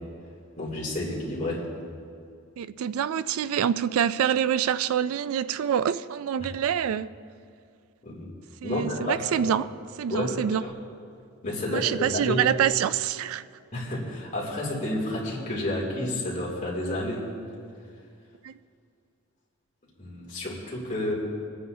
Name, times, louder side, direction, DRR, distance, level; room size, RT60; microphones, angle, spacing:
voice 1, 0.6-1.6 8.0-8.3 8.6-9.5 10.1-10.7 11.4-12.4 13.7-17.3 20.0-21.1, left 1 dB, 35° left, 2.8 m, -30 dB
voice 2, 2.6-7.1 8.6-9.7 10.0-10.6 11.7-13.4 18.4-18.5, right 9 dB, 75° right, 0.3 m, -26 dB
23.5 x 9.4 x 2.8 m
head